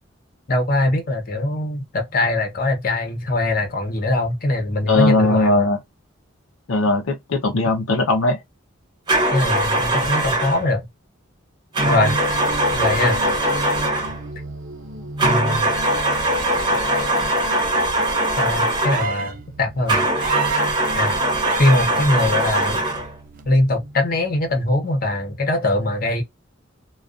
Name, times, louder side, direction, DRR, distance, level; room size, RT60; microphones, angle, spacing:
voice 1, 0.5-5.7 9.3-10.8 11.8-12.1 12.7-13.2 15.2-15.7 18.4-20.0 20.9-21.1 21.6-22.8 23.5-26.2, left 1 dB, 45° left, 0.8 m, -21 dB
voice 2, 4.8-5.8 6.7-8.4, left 2 dB, 80° left, 0.5 m, -19 dB
sound 1, 9.1-10.7 11.7-14.2 15.2-19.2 19.9-23.1, right 1 dB, 20° right, 0.9 m, -21 dB
sound 2, 11.8-24.5, right 1 dB, 70° right, 0.7 m, -34 dB
sound 3, 18.8-19.4 20.2-20.7 21.4-21.9 23.4-23.5, right 6 dB, 40° right, 0.3 m, -27 dB
2.3 x 2.3 x 2.4 m
head